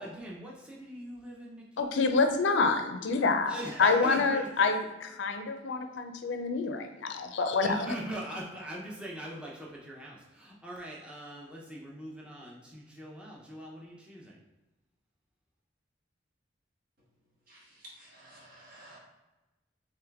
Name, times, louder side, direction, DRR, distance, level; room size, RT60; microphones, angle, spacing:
voice 1, 0.0-1.9 3.5-4.7 7.5-14.4, right 1 dB, 5° right, -4 dB, 0.6 m, -41 dB
voice 2, 1.8-7.8, left 4 dB, 75° left, 6 dB, 0.4 m, -27 dB
voice 3, 17.5-19.0, right 1 dB, 50° right, -5 dB, 1.3 m, -53 dB
3.5 x 3.2 x 3.4 m, 1.1 s
head